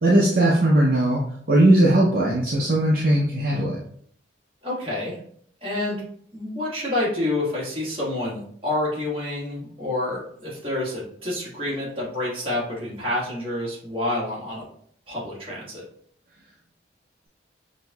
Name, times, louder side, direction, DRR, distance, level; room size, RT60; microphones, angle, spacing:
voice 1, 0.0-1.2 1.5-3.8, right 1 dB, 50° right, -5 dB, 0.6 m, -18 dB
voice 2, 4.6-5.2 5.6-6.0 6.3-14.6 15.1-15.8, left 1 dB, 30° right, -5 dB, 1.5 m, -28 dB
6.0 x 2.7 x 2.3 m, 0.62 s
head